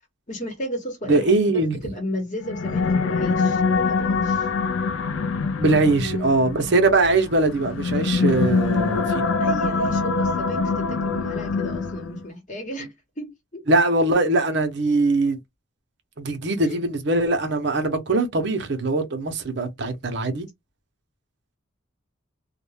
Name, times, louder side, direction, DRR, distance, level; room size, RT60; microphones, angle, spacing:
voice 1, 0.3-4.5 5.9-6.6 9.4-13.6 16.6-16.8, equal, 40° left, 0.9 m, -34 dB
voice 2, 1.1-1.8 5.6-9.3 13.7-15.4 16.2-20.5, right 2 dB, 55° right, 0.6 m, -21 dB
sound 1, 2.4-12.3, left 4 dB, 80° left, 0.4 m, -24 dB
2.3 x 2.1 x 3.2 m
head